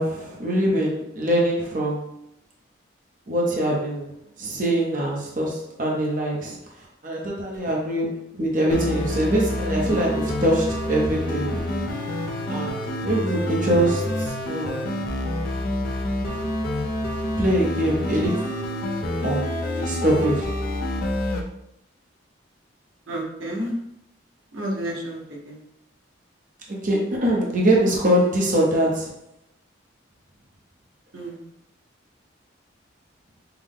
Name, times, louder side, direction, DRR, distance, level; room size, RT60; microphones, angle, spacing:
voice 1, 0.0-2.1 3.3-4.1 4.4-6.6 7.0-11.6 12.5-12.8 13.0-15.1 17.4-18.4 19.2-20.5 26.7-29.1, right 1 dB, 40° right, -3 dB, 0.8 m, -23 dB
sound 1, 8.7-21.4, left 1 dB, 45° left, 0.6 m, -27 dB
voice 2, 23.1-23.8 24.5-25.6 31.1-31.4, right 1 dB, 85° right, -1 dB, 1.0 m, -31 dB
5.7 x 2.2 x 3.6 m, 0.79 s
head